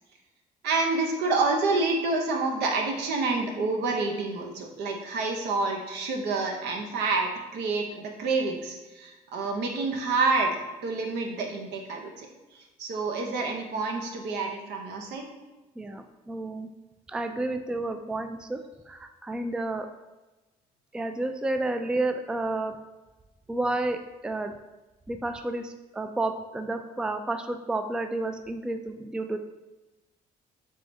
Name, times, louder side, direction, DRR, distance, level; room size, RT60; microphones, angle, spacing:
voice 1, 0.6-10.6 10.8-12.3 12.5-15.3, right 3 dB, 75° right, 1 dB, 0.8 m, -28 dB
voice 2, 15.8-16.7 17.1-19.9 20.9-22.7 23.5-24.6 25.1-29.4, right 2 dB, 5° right, 7 dB, 0.3 m, -31 dB
4.6 x 3.4 x 2.7 m, 1.1 s
supercardioid pair, 60°, 18 cm